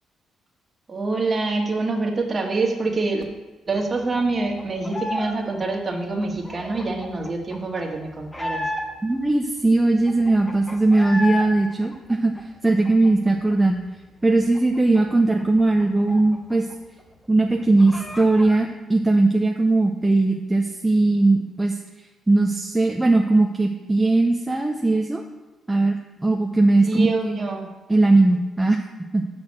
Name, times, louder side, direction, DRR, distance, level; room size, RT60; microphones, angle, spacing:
voice 1, 0.9-3.2 3.7-8.6 26.8-27.7, right 3 dB, 35° right, 2 dB, 1.6 m, -25 dB
sound 1, 3.8-5.4 5.6-9.2 9.6-9.7 9.9-11.5 11.8-13.5 13.9-14.0 14.3-16.7 17.0-17.1 17.4-18.6, left 1 dB, 15° left, 1.1 m, -33 dB
voice 2, 9.0-12.3 12.6-13.8 14.2-16.7 17.3-21.8 22.3-25.2 25.7-27.1 27.3-27.4 27.9-28.8 29.1-29.2, right 2 dB, 15° right, 2 dB, 0.6 m, -19 dB
6.4 x 6.1 x 7.3 m, 1.2 s
cardioid pair, 90°, 0 cm